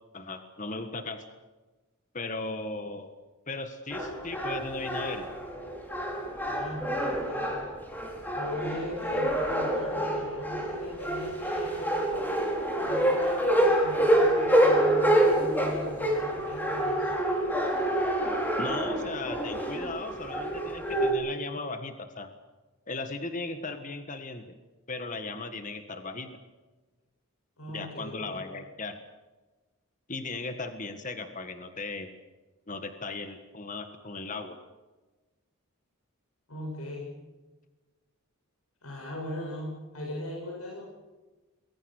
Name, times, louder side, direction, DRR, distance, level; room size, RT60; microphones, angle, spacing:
voice 1, 0.1-1.2 2.1-3.1 3.5-5.2 18.6-22.3 22.9-24.5 24.9-26.3 27.7-29.0 30.1-32.1 32.7-34.6, left 3 dB, 35° left, 7 dB, 1.6 m, -37 dB
sound 1, 3.9-21.1, right 1 dB, 10° left, 4.7 m, -27 dB
voice 2, 6.4-7.5 8.3-17.1 27.6-28.4 36.5-37.1 38.8-40.8, left 1 dB, 85° left, -2 dB, 7.7 m, -39 dB
28.0 x 22.0 x 6.6 m, 1.2 s
head